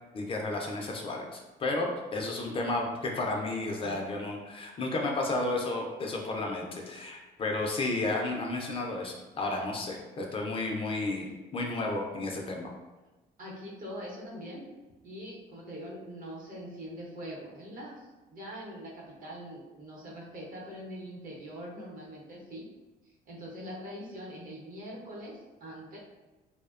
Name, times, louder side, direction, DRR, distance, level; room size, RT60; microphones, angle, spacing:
voice 1, 0.1-12.7, left 2 dB, 35° left, 1 dB, 0.4 m, -32 dB
voice 2, 13.4-14.6 15.0-22.7 23.3-26.0, equal, 55° right, -3 dB, 0.8 m, -43 dB
2.7 x 2.0 x 2.3 m, 1.1 s
cardioid pair, 110°, 17 cm